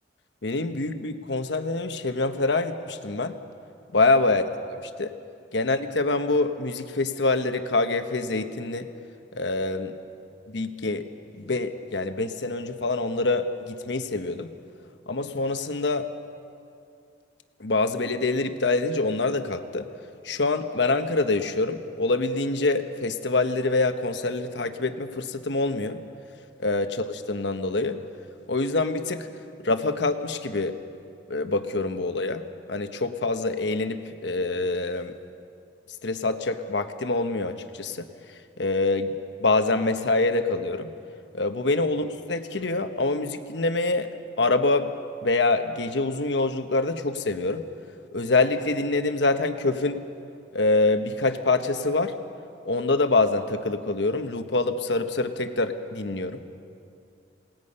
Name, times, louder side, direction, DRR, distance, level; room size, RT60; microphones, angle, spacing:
voice 1, 0.4-3.4 3.9-4.4 4.8-5.1 5.5-8.9 9.3-9.9 10.5-11.0 11.4-14.5 15.1-16.1 17.6-19.9 20.2-26.0 26.6-28.0 28.5-29.3 29.6-30.8 31.3-35.1 36.0-38.1 38.6-39.1 39.4-40.9 41.3-44.1 44.4-44.9 45.2-47.6 48.1-50.0 50.5-52.1 52.6-56.6, left 3 dB, 75° left, 8 dB, 1.1 m, -25 dB
28.0 x 19.0 x 5.5 m, 2.4 s
head